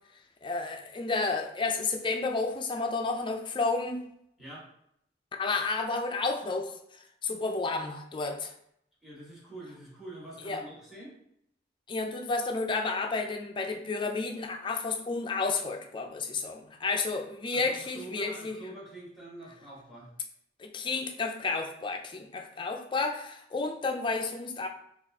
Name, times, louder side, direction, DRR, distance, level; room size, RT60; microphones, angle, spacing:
voice 1, 0.4-4.0 5.4-8.5 10.4-10.6 11.9-18.6 20.6-24.7, left 3 dB, 25° left, 4 dB, 0.4 m, -31 dB
voice 2, 9.0-11.1 17.5-20.1, right 1 dB, ahead, -6 dB, 1.4 m, -45 dB
4.1 x 2.4 x 3.4 m, 0.72 s
head